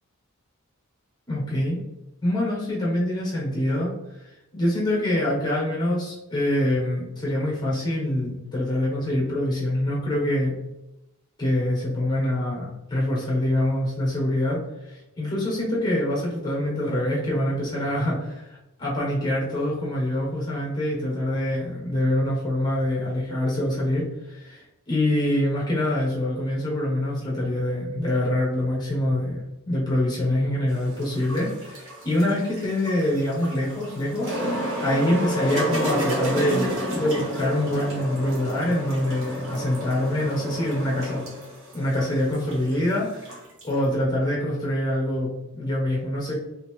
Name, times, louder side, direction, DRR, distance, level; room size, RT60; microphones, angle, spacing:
voice 1, 1.3-1.8 2.2-3.9 4.5-10.5 11.4-14.6 14.9-18.4 18.8-29.4 29.6-41.2 41.7-46.4, left 1 dB, 20° left, -4 dB, 0.9 m, -25 dB
sound 1, 30.7-43.8, equal, 60° right, 1.0 m, -31 dB
3.3 x 2.8 x 3.0 m, 0.93 s
head